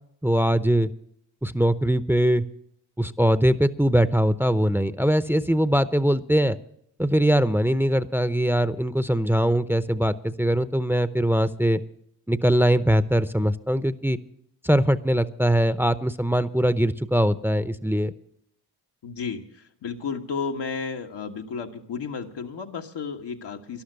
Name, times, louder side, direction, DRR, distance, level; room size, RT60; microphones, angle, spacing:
voice 1, 0.2-0.9 1.4-2.4 3.0-6.6 7.0-11.8 12.3-14.2 14.6-18.1, equal, 5° right, 13 dB, 0.7 m, -21 dB
voice 2, 19.0-23.8, left 5 dB, 80° left, 3 dB, 1.4 m, -33 dB
13.0 x 11.5 x 6.6 m, 0.71 s
cardioid pair, 45°, 41 cm